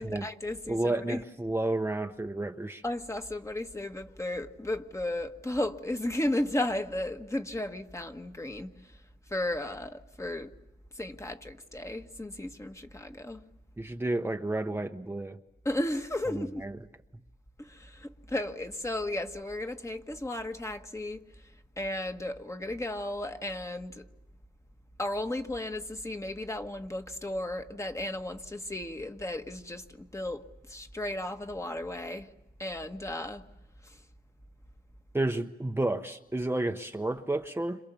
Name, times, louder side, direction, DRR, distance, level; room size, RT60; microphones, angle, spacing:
voice 1, 0.0-1.2 2.8-9.0 9.3-10.5 10.9-13.4 15.6-16.6 17.6-21.5 21.8-24.1 25.0-32.3 32.6-33.4 33.8-34.0, left 1 dB, 15° left, 1.6 m, -34 dB
voice 2, 0.7-2.8 13.8-15.4 16.3-16.7 35.1-37.8, right 2 dB, 15° right, 1.0 m, -31 dB
30.0 x 27.0 x 7.0 m
wide cardioid pair, 90°, 17 cm